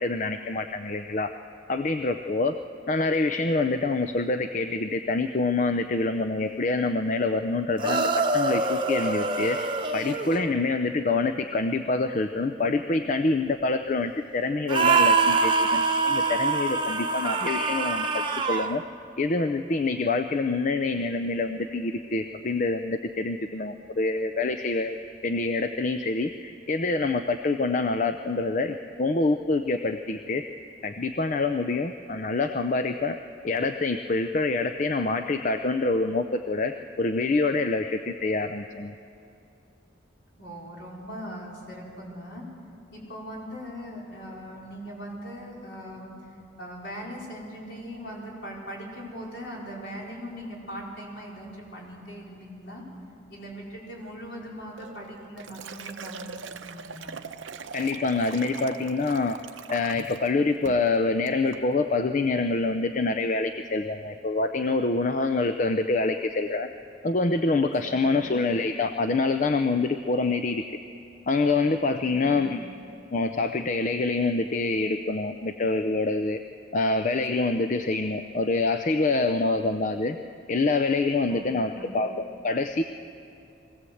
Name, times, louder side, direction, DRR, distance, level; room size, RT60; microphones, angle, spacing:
voice 1, 0.0-1.3 1.7-2.5 2.9-9.6 9.9-18.1 18.5-18.8 19.2-25.0 25.2-30.4 30.8-33.2 33.4-38.9 57.7-59.4 59.7-66.7 67.0-70.6 71.3-72.6 73.1-76.4 76.7-80.2 80.5-82.8, left 3 dB, 40° left, 8 dB, 0.5 m, -26 dB
sound 1, 7.8-10.5 14.7-18.7, right 4 dB, 25° right, 0.9 m, -24 dB
voice 2, 40.4-42.4 42.9-46.1 46.6-52.8 53.3-57.2 67.8-68.4 72.0-72.5 81.3-82.0, equal, 65° left, -3 dB, 4.8 m, -40 dB
Liquid, 54.8-60.3 60.7-60.9 61.3-61.6, right 5 dB, 90° right, 0.8 m, -42 dB
22.0 x 16.5 x 7.8 m, 2.8 s
head